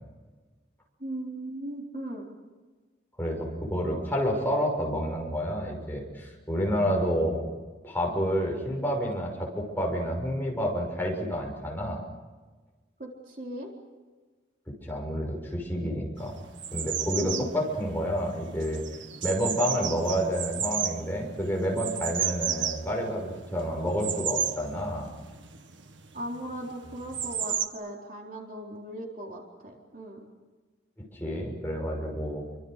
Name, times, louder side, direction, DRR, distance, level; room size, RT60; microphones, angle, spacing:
voice 1, 1.0-2.3 13.0-13.7 17.2-17.5 26.1-30.2, right 1 dB, 45° right, 0 dB, 4.2 m, -38 dB
voice 2, 3.2-7.4 7.8-12.0 14.8-16.4 16.7-18.8 19.2-25.1 31.2-32.4, equal, 10° left, -1 dB, 6.4 m, -29 dB
sound 1, 16.2-27.7, right 8 dB, 85° right, 1.7 m, -34 dB
29.0 x 25.0 x 6.7 m, 1.3 s
head